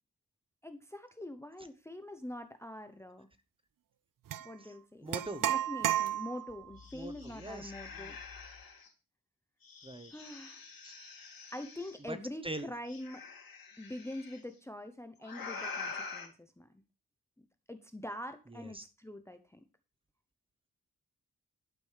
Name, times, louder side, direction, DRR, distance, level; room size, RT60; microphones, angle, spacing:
voice 1, 0.6-3.3 4.4-5.1 5.4-8.2 10.1-10.6 11.5-13.3 13.8-16.8 17.4-19.6, left 1 dB, 10° left, 9 dB, 0.8 m, -44 dB
sound 1, 4.3-4.5 5.1-6.6, right 11 dB, 65° right, 0.5 m, -32 dB
voice 2, 5.0-5.4 6.9-8.2 9.8-10.1 10.8-10.9 12.0-12.2 12.4-12.7 18.5-18.9, right 2 dB, 15° right, 11 dB, 1.0 m, -43 dB
sound 2, 6.1-6.2 6.5-8.9 9.6-12.0 12.9-14.4 15.2-16.3, left 4 dB, 75° left, 2.5 m, -46 dB
11.5 x 5.2 x 6.5 m, 0.31 s
wide cardioid pair, 125°, 35 cm